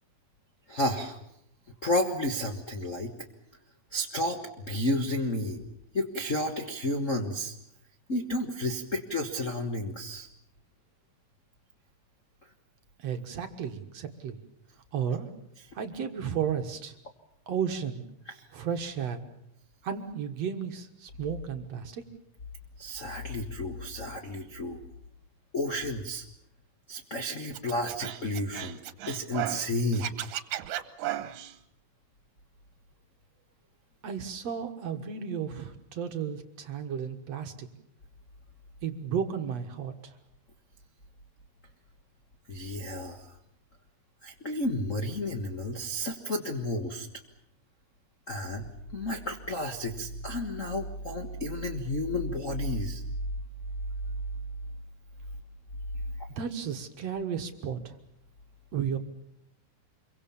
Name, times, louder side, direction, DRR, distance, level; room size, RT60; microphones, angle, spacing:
voice 1, 0.7-1.2 1.8-3.1 3.9-4.4 4.7-5.6 5.9-7.5 8.1-10.3 22.8-24.8 25.5-26.2 26.9-28.8 29.1-30.1 42.5-43.3 44.2-47.1 48.3-48.7 48.9-53.0, left 1 dB, 80° left, 5 dB, 0.7 m, -31 dB
voice 2, 13.0-14.4 14.9-15.3 15.7-17.0 17.5-18.1 18.5-19.3 19.8-22.0 34.0-37.7 38.8-40.2 56.3-58.0 58.7-59.0, right 7 dB, 55° right, 6 dB, 2.2 m, -33 dB
Scratching (performance technique), 27.5-29.7 29.9-31.5, right 13 dB, 70° right, 2.6 m, -35 dB
26.5 x 23.5 x 7.1 m, 0.76 s
omnidirectional pair, 4.2 m